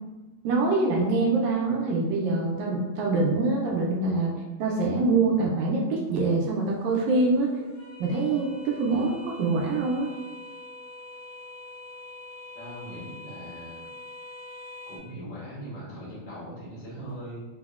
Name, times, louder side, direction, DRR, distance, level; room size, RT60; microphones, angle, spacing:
voice 1, 0.4-4.3 4.6-7.5 8.0-10.1, right 3 dB, 85° right, -1 dB, 1.9 m, -24 dB
Tea Kettle, 6.0-15.0, left 1 dB, 85° left, 2.1 m, -45 dB
voice 2, 12.5-13.9 14.9-17.4, right 1 dB, 70° left, -8 dB, 1.1 m, -40 dB
5.1 x 2.1 x 2.3 m, 1.2 s
omnidirectional pair, 3.4 m